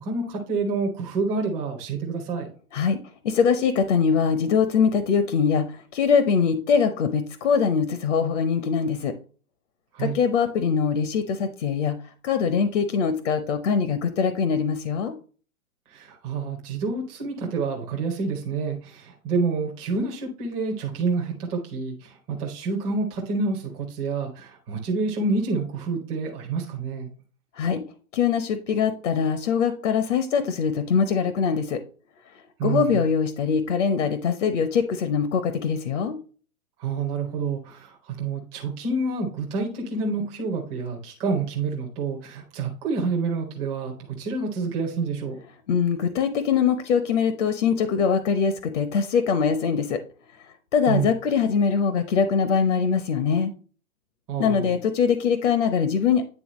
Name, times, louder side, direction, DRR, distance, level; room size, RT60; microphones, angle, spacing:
voice 1, 0.0-2.5 9.9-10.2 15.9-27.1 32.6-33.0 36.8-45.4 50.9-51.1 54.3-54.8, right 4 dB, 5° right, 0 dB, 0.4 m, -28 dB
voice 2, 3.2-9.1 10.0-12.0 12.2-15.1 27.5-27.8 28.1-31.8 32.6-36.2 45.7-50.0 50.7-53.5 54.4-56.2, left 6 dB, 55° left, 10 dB, 0.9 m, -22 dB
9.4 x 3.5 x 3.0 m, 0.39 s
hypercardioid pair, 155°, 43 cm